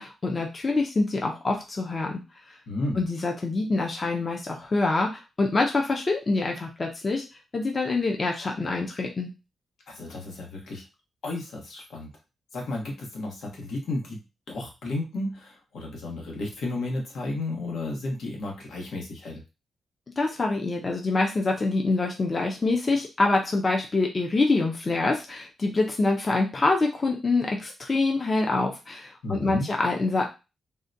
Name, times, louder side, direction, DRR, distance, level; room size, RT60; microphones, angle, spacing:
voice 1, 0.0-2.2 3.0-7.2 7.5-9.3 20.2-30.2, left 3 dB, 30° left, 1 dB, 0.5 m, -25 dB
voice 2, 2.7-3.0 9.9-10.8 11.2-12.1 12.5-14.2 14.5-19.4 29.2-29.7, left 2 dB, 85° left, 0 dB, 1.1 m, -33 dB
3.7 x 2.1 x 2.6 m, 0.27 s
wide cardioid pair, 175°, 0 cm